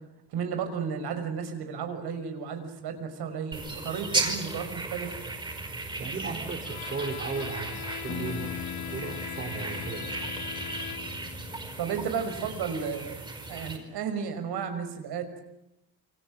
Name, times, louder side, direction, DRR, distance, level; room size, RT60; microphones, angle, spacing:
voice 1, 0.3-5.1 6.0-6.4 11.8-15.3, right 6 dB, 85° right, 7 dB, 6.0 m, -33 dB
sound 1, 3.5-13.8, right 2 dB, 10° right, 5.1 m, -36 dB
voice 2, 6.0-10.2, right 4 dB, 30° right, 8 dB, 3.0 m, -36 dB
Bowed string instrument, 6.6-11.3, left 11 dB, 70° left, 2.5 m, -41 dB
sound 2, 8.1-12.8, left 10 dB, 50° left, 1.6 m, -42 dB
28.5 x 26.0 x 7.8 m, 0.92 s
cardioid pair, 180°, 38 cm